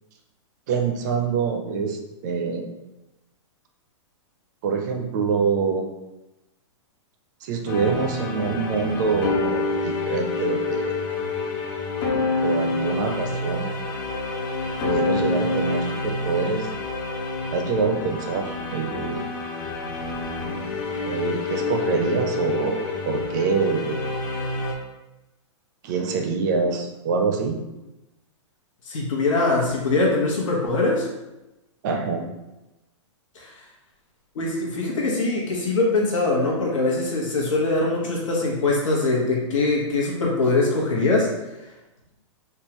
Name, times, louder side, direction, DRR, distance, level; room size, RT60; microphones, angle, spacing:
voice 1, 0.7-2.7 4.6-5.8 7.4-10.9 12.4-13.7 14.8-16.7 17.5-19.2 21.1-24.0 25.8-27.6 31.8-32.2, right 4 dB, 35° right, 4 dB, 0.4 m, -25 dB
sound 1, 7.7-24.7, left 3 dB, 40° left, 0.5 m, -28 dB
voice 2, 28.8-31.1 33.3-33.6 34.3-41.3 41.6-41.7, left 2 dB, 85° left, -3 dB, 1.1 m, -22 dB
3.6 x 2.3 x 2.9 m, 0.99 s
hypercardioid pair, 160°, 16 cm